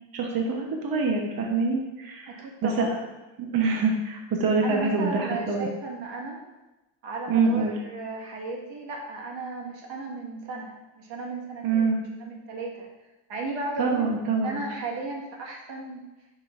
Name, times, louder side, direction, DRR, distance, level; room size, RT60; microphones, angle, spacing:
voice 1, 0.1-2.3 2.6-3.0 3.4-5.7 7.3-7.7 11.6-12.0 13.8-14.6, right 4 dB, 50° right, 1 dB, 1.0 m, -25 dB
voice 2, 2.3-2.9 4.6-6.4 7.0-12.9 13.3-16.0, right 3 dB, 70° right, -1 dB, 1.7 m, -35 dB
10.5 x 5.3 x 2.5 m, 1.0 s
cardioid pair, 140°, 45 cm